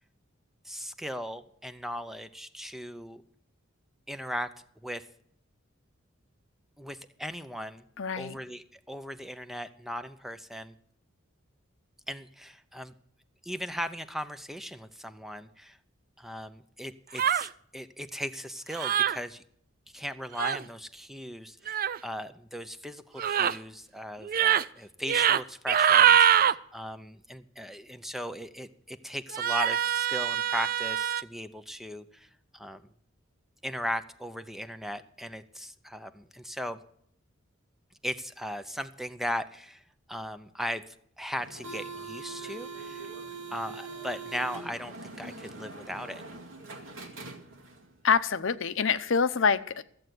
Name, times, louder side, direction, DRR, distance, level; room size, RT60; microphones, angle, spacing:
voice 1, 0.6-3.2 4.1-4.5 4.8-5.1 6.8-7.8 8.2-10.8 12.1-12.9 13.4-15.8 16.2-19.4 19.9-32.8 33.6-36.8 38.0-43.1 43.5-46.2, equal, ahead, 11 dB, 0.6 m, -38 dB
voice 2, 8.0-8.4 48.0-49.8, left 6 dB, 70° left, 12 dB, 0.7 m, -26 dB
sound 1, 17.1-17.5 18.7-19.2 20.3-20.6 21.7-22.0 23.2-23.6 24.2-24.6 25.0-25.4 25.7-26.5 29.3-31.2, right 9 dB, 45° right, 0.4 m, -24 dB
sound 2, 41.4-47.8, right 3 dB, 70° right, 2.1 m, -42 dB
14.0 x 7.9 x 7.7 m, 0.65 s
head